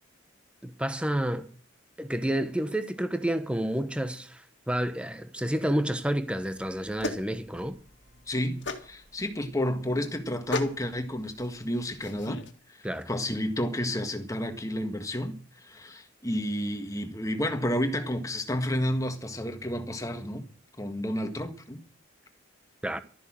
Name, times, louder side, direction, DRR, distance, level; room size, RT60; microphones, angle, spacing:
voice 1, 0.6-1.5 2.0-7.8 12.8-13.1 22.8-23.0, right 1 dB, 5° right, 1.0 m, -30 dB
sound 1, 6.5-12.5, left 2 dB, 60° left, 1.9 m, -38 dB
voice 2, 8.3-12.4 12.8-20.5 20.8-21.8, left 1 dB, 15° left, 1.6 m, -31 dB
13.0 x 11.0 x 7.5 m
head